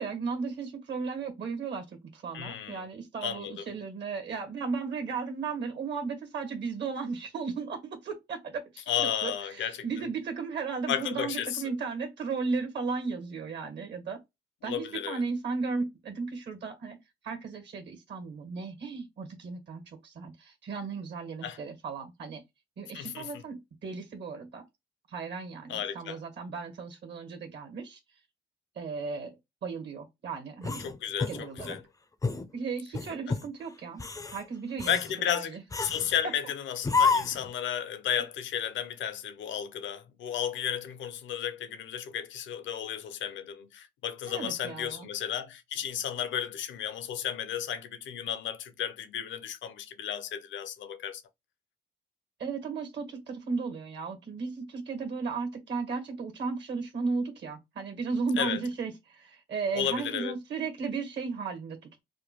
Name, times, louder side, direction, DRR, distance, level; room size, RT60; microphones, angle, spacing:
voice 1, 0.0-1.8 2.1-14.2 14.6-17.0 17.2-22.4 22.8-24.6 25.1-28.0 28.7-29.3 29.6-30.8 31.3-31.8 32.5-34.0 34.3-35.0 35.3-35.6 44.3-45.1 52.4-62.0, right 4 dB, 60° right, 1.4 m, -35 dB
voice 2, 2.3-2.9 3.2-3.6 8.9-9.8 10.9-11.6 14.6-15.2 21.4-21.6 22.9-23.4 25.7-26.2 30.8-31.8 33.3-33.4 34.9-51.2 58.4-58.6 59.7-60.3, left 9 dB, 70° left, 0.6 m, -33 dB
sound 1, 30.6-31.8 32.2-32.5 32.9-33.5 33.9-34.4 34.8-35.1 35.7-36.2 36.8-37.5, left 4 dB, 15° left, 0.4 m, -29 dB
3.2 x 2.2 x 2.9 m
cardioid pair, 90°, 20 cm